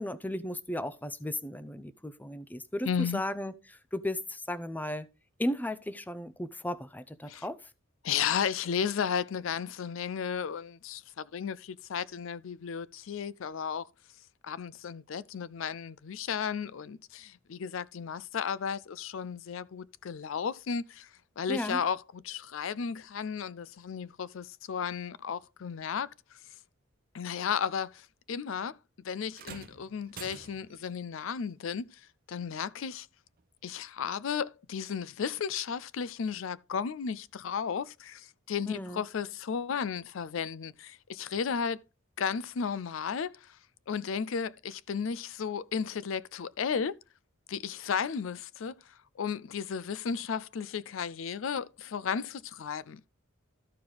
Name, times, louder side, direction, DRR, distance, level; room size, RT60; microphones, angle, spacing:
voice 1, 0.0-5.1 5.4-7.7 21.5-21.8 38.7-39.0, left 1 dB, 10° left, 0.5 m, -35 dB
voice 2, 2.9-3.2 7.3-7.4 8.0-13.9 14.4-21.1 21.4-26.1 27.1-28.8 29.0-32.0 32.3-33.1 33.6-41.8 42.2-43.6 43.9-47.0 47.5-53.0, left 7 dB, 70° left, 0.4 m, -34 dB
sound 1, 29.3-30.9 32.3-32.5 33.4-33.5, right 6 dB, 45° right, 0.8 m, -47 dB
13.5 x 4.8 x 3.9 m
head